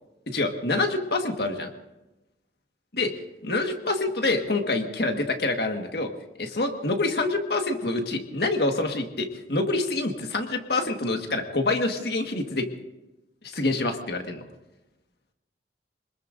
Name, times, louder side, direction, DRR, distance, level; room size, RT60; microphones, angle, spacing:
voice 1, 0.3-1.7 2.9-3.1 3.4-6.1 6.4-12.7 13.4-14.4, left 2 dB, 65° left, 4 dB, 1.6 m, -26 dB
26.0 x 20.5 x 2.6 m, 1.0 s
head